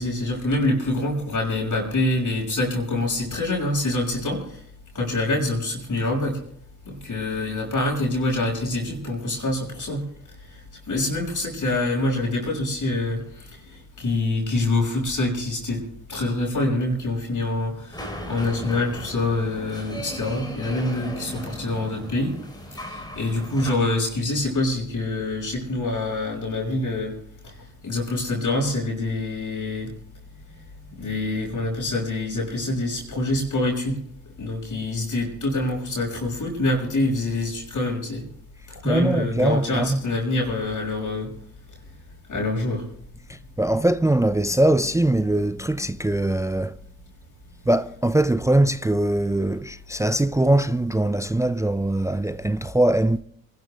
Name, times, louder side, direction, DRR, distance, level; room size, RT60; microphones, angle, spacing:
voice 1, 0.0-4.6 4.9-6.4 6.8-10.0 10.9-22.4 22.7-27.2 27.4-27.5 27.8-29.9 31.0-34.0 34.4-38.3 38.7-41.3 42.3-42.9, left 2 dB, 50° left, 6.3 m, -26 dB
sound 1, 17.9-23.7, equal, 10° left, 3.8 m, -36 dB
voice 2, 38.8-40.0 43.3-46.8 47.7-53.2, right 1 dB, 10° right, 0.5 m, -22 dB
26.5 x 12.5 x 3.4 m
hypercardioid pair, 45°, 40 cm